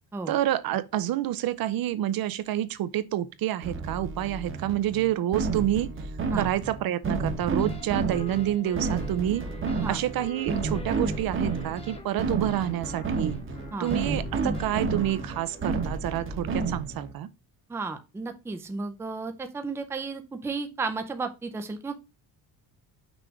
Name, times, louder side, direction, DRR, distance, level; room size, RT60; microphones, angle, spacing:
voice 1, 0.3-5.9 6.3-9.4 9.7-13.4 13.8-17.3, right 12 dB, 50° right, 0.5 m, -28 dB
sound 1, 3.6-17.1, right 4 dB, 25° right, 1.0 m, -31 dB
sound 2, 7.6-15.9, left 3 dB, 15° left, 0.9 m, -46 dB
voice 2, 17.7-21.9, right 4 dB, 5° right, 0.5 m, -33 dB
6.1 x 3.3 x 4.8 m
cardioid pair, 165°, 45 cm